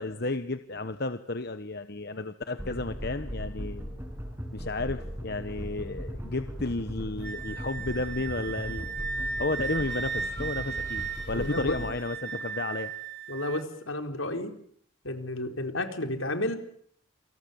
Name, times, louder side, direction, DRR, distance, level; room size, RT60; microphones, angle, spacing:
voice 1, 0.0-3.9 4.5-8.9 9.4-12.9, left 2 dB, 50° left, 10 dB, 1.1 m, -32 dB
sound 1, 2.6-12.0, equal, 10° right, 6.7 m, -38 dB
Wind instrument woodwind instrument, 7.2-13.6, right 5 dB, 50° right, 4.5 m, -36 dB
voice 2, 11.3-11.8 13.3-14.5 15.0-16.6, left 1 dB, 75° left, 6 dB, 4.4 m, -32 dB
28.5 x 28.0 x 7.2 m, 0.63 s
head